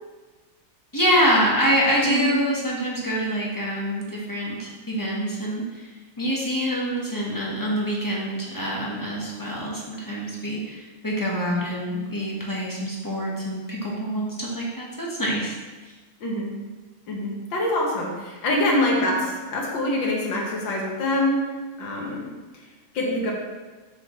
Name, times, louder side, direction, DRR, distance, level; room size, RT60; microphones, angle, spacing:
voice 1, 0.9-5.9 6.2-15.5 18.9-19.2, equal, 15° left, -4 dB, 0.8 m, -26 dB
voice 2, 16.2-16.5 17.1-21.4 21.8-22.3 22.9-23.3, left 1 dB, 65° left, -2 dB, 2.1 m, -25 dB
7.6 x 6.1 x 3.1 m, 1.3 s
omnidirectional pair, 2.3 m